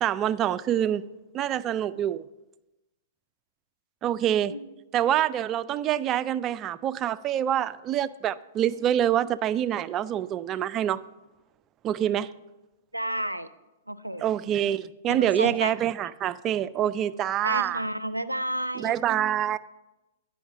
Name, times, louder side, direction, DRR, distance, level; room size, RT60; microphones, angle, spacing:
voice 1, 0.0-1.1 1.3-2.2 4.0-4.5 4.9-11.0 11.8-12.3 14.2-17.8 18.8-19.6, right 11 dB, 25° right, 0.3 m, -26 dB
voice 2, 12.9-13.5 13.9-14.2 15.1-15.7 17.4-19.0, right 1 dB, 90° right, 0.5 m, -31 dB
10.0 x 5.6 x 6.2 m
figure-of-eight pair, 105°, 0 cm